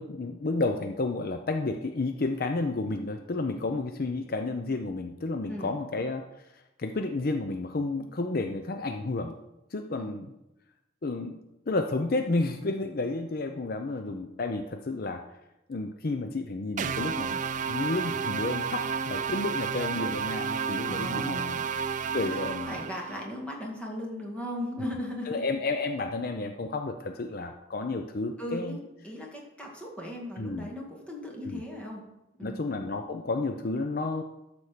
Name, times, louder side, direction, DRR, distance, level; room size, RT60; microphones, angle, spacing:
voice 1, 0.0-9.4 9.7-10.3 11.0-11.4 11.7-15.2 15.7-17.4 17.7-21.5 22.1-22.7 25.3-28.8 30.4-30.7 31.4-31.6 32.4-34.2, left 3 dB, 50° left, 5 dB, 0.6 m, -31 dB
sound 1, 16.8-23.3, right 6 dB, 40° right, 0.4 m, -31 dB
voice 2, 20.8-21.7 22.2-25.6 28.4-32.0 32.4-32.7, left 1 dB, 5° left, -2 dB, 1.9 m, -38 dB
12.5 x 4.3 x 6.6 m, 0.92 s
head